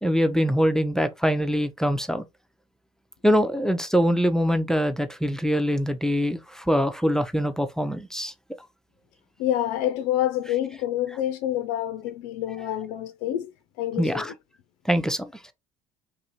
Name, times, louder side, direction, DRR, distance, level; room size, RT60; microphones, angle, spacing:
voice 1, 0.0-2.2 3.2-8.3 14.0-14.3 14.9-15.5, equal, 5° left, 0.5 m, -23 dB
voice 2, 9.4-13.5 13.8-14.3, left 12 dB, 70° left, 0.4 m, -27 dB
3.3 x 2.5 x 2.8 m
hypercardioid pair, 65°, 20 cm